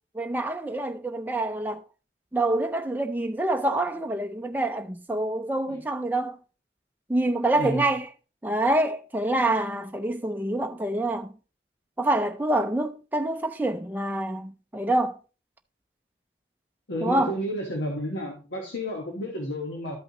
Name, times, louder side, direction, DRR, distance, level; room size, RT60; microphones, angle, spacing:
voice 1, 0.1-1.8 2.3-6.4 7.1-8.1 8.4-11.3 12.0-15.2 17.0-17.3, right 1 dB, 10° right, 0.4 m, -26 dB
voice 2, 7.6-7.9 16.9-20.0, equal, 85° left, 1.4 m, -31 dB
12.5 x 5.5 x 2.9 m
head